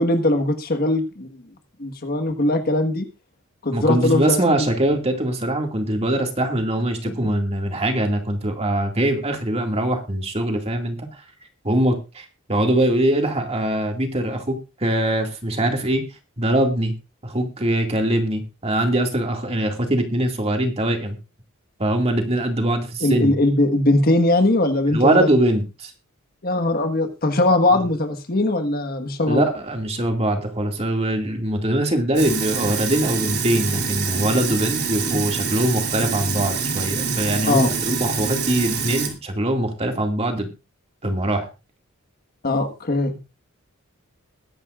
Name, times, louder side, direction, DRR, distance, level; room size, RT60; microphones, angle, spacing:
voice 1, 0.0-1.4 1.8-3.1 3.6-4.7 7.1-7.2 23.0-25.3 26.4-29.5 37.5-37.7 42.4-43.1, left 2 dB, 45° left, 7 dB, 1.5 m, -20 dB
voice 2, 3.7-11.1 11.6-16.0 16.4-16.9 17.2-21.2 21.8-23.3 24.9-25.9 29.3-40.5 41.0-41.5, right 1 dB, 30° right, 3 dB, 2.2 m, -22 dB
Sink (filling or washing), 32.2-39.1, right 5 dB, 50° right, 3.1 m, -26 dB
21.0 x 11.0 x 2.5 m, 0.28 s
head